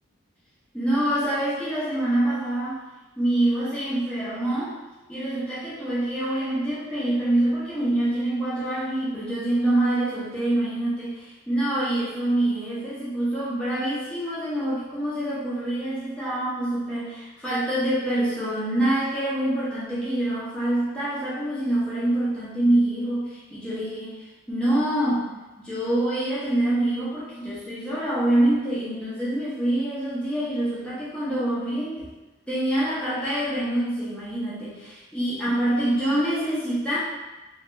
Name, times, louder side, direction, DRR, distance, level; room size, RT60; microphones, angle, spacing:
voice 1, 0.7-2.8 3.2-4.8 5.1-25.3 25.6-32.1 32.5-37.0, right 1 dB, 5° left, -10 dB, 0.7 m, -25 dB
3.1 x 2.3 x 3.1 m, 1.1 s
head